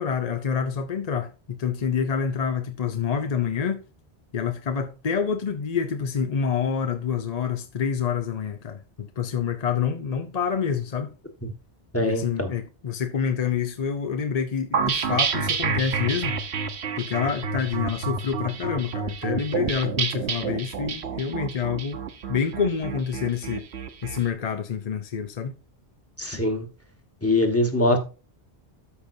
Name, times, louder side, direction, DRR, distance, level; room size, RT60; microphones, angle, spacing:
voice 1, 0.0-3.8 4.3-11.1 12.0-16.3 17.0-22.0 22.3-23.7 24.0-25.5, left 7 dB, 45° left, 0.6 m, -27 dB
voice 2, 11.9-12.5 26.2-26.7 27.2-28.0, left 1 dB, 15° left, 1.4 m, -22 dB
sound 1, 14.7-24.2, right 5 dB, 75° right, 1.2 m, -29 dB
13.0 x 5.2 x 2.6 m
omnidirectional pair, 1.1 m